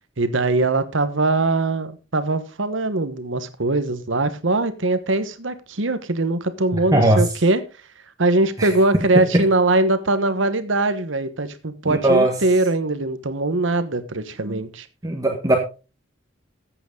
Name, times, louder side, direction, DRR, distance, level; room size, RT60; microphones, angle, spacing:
voice 1, 0.2-7.6 8.2-14.9, right 2 dB, 75° right, 11 dB, 1.2 m, -21 dB
voice 2, 6.7-7.2 8.6-8.7 9.1-9.4 11.9-12.3 15.0-15.6, right 1 dB, 20° right, 2 dB, 1.5 m, -18 dB
14.5 x 8.2 x 3.8 m, 0.32 s
head